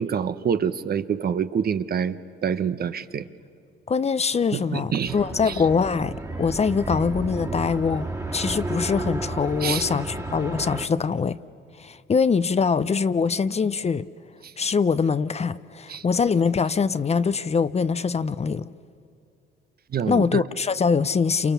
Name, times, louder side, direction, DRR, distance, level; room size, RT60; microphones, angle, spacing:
voice 1, 0.0-2.2 2.4-3.3 4.5-5.2 5.5-5.6 9.6-9.9 14.4-14.5 15.9-16.0 19.9-20.4, right 7 dB, 50° right, 1.0 m, -26 dB
voice 2, 3.9-11.4 11.8-14.1 14.6-18.7 20.1-21.5, left 5 dB, 30° left, 0.7 m, -23 dB
sound 1, 5.1-10.9, right 2 dB, 15° right, 2.0 m, -32 dB
29.5 x 28.5 x 7.1 m
cardioid pair, 90°, 20 cm